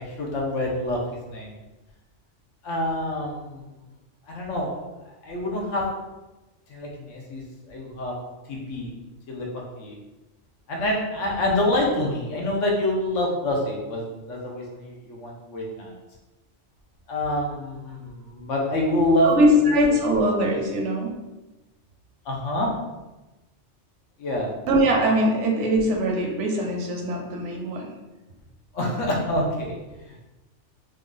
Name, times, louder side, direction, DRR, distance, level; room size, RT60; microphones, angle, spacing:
voice 1, 0.0-1.5 2.6-3.7 4.3-4.8 5.2-5.9 6.7-8.1 8.5-8.9 9.3-9.5 9.8-10.0 10.7-15.9 17.1-19.7 22.2-22.7 24.2-24.5 28.7-29.8 30.1-30.2, left 1 dB, 85° left, -2 dB, 1.2 m, -26 dB
voice 2, 19.2-21.1 24.7-27.9, equal, 80° right, 1 dB, 1.0 m, -21 dB
3.2 x 2.4 x 3.8 m, 1.1 s
omnidirectional pair, 1.2 m